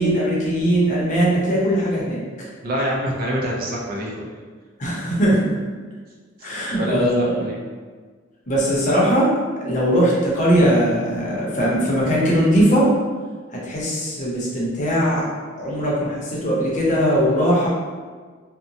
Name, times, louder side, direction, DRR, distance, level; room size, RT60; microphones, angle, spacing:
voice 1, 0.0-2.5 4.8-5.4 6.4-7.4 8.5-9.3 9.6-12.9 13.5-15.2 15.6-17.7, equal, 40° left, -5 dB, 0.7 m, -20 dB
voice 2, 2.6-4.3 6.4-7.6, equal, 50° right, -3 dB, 0.5 m, -26 dB
2.8 x 2.1 x 2.6 m, 1.5 s
head